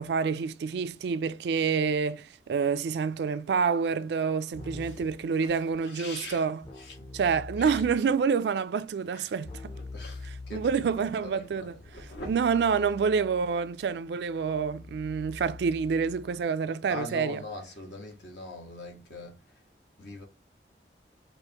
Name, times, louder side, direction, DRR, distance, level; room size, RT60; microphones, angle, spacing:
voice 1, 0.0-6.6 7.1-9.7 10.5-11.7 12.3-17.4, right 6 dB, 70° right, 0.3 m, -27 dB
Keyboard (musical), 4.5-5.2 6.6-8.2 9.4-16.5, left 3 dB, 30° left, 0.6 m, -45 dB
voice 2, 4.8-6.5 6.7-7.2 7.5-7.8 9.1-9.3 9.7-12.3 16.9-19.6 20.0-20.2, left 2 dB, 75° left, 1.4 m, -43 dB
4.8 x 2.5 x 2.8 m
head